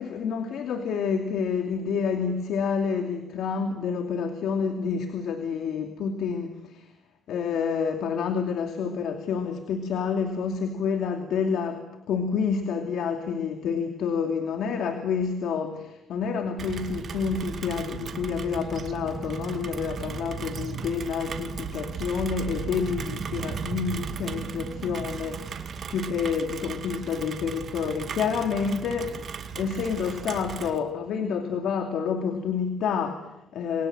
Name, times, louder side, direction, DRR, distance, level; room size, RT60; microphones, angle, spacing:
voice 1, 0.0-6.9 7.3-33.9, left 6 dB, 75° left, 5 dB, 2.6 m, -29 dB
Rain, 16.6-30.8, right 6 dB, 55° right, 2.3 m, -36 dB
28.0 x 22.5 x 7.8 m, 0.94 s
cardioid pair, 90°, 0 cm